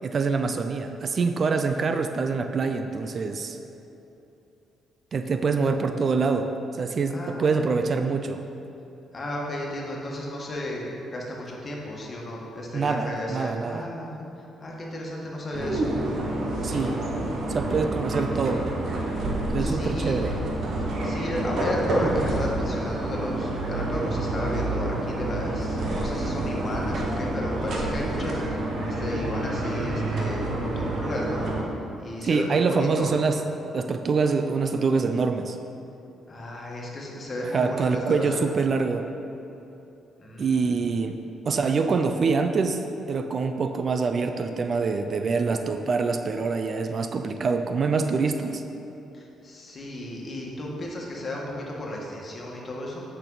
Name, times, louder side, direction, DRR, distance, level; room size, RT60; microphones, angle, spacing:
voice 1, 0.0-3.6 5.1-8.4 12.7-13.9 16.6-17.0 17.5-18.7 19.5-20.3 32.2-33.4 33.7-35.6 37.4-39.1 40.4-48.6, right 4 dB, 45° right, 7 dB, 0.4 m, -25 dB
voice 2, 5.5-5.8 7.1-7.7 9.1-14.1 14.6-15.9 19.6-20.3 21.0-31.5 32.0-33.1 36.3-38.4 40.2-40.7 49.1-53.0, left 1 dB, 35° left, -2 dB, 1.7 m, -34 dB
sound 1, 15.5-31.6, right 1 dB, 60° right, 1.3 m, -28 dB
8.9 x 6.2 x 4.0 m, 2.9 s
cardioid pair, 90°, 0 cm